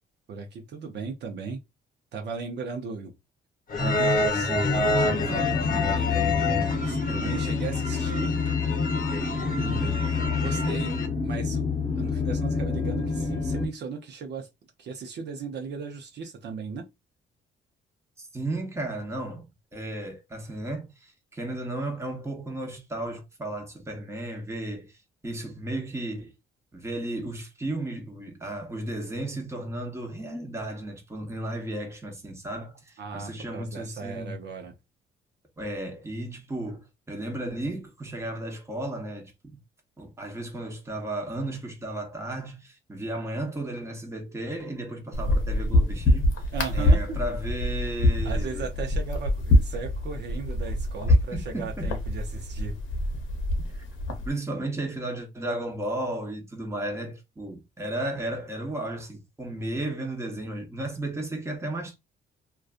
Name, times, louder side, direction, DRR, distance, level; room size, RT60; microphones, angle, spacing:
voice 1, 0.3-1.6 2.1-3.1 3.8-8.3 9.3-11.7 12.0-14.5 14.8-16.9 33.0-34.7 46.5-47.2 48.2-52.8, right 5 dB, 60° right, 0.6 m, -37 dB
sound 1, 3.7-11.1, left 2 dB, 45° left, 0.7 m, -28 dB
sound 2, 4.4-13.7, left 5 dB, 25° left, 1.1 m, -28 dB
voice 2, 9.5-10.0 18.2-26.3 26.7-34.3 35.6-39.6 40.0-46.4 46.7-48.7 51.1-51.9 53.6-53.8 54.2-62.0, right 1 dB, 15° right, 0.9 m, -34 dB
sound 3, 45.1-54.3, left 1 dB, 85° left, 0.7 m, -25 dB
2.5 x 2.3 x 2.4 m
cardioid pair, 90°, 20 cm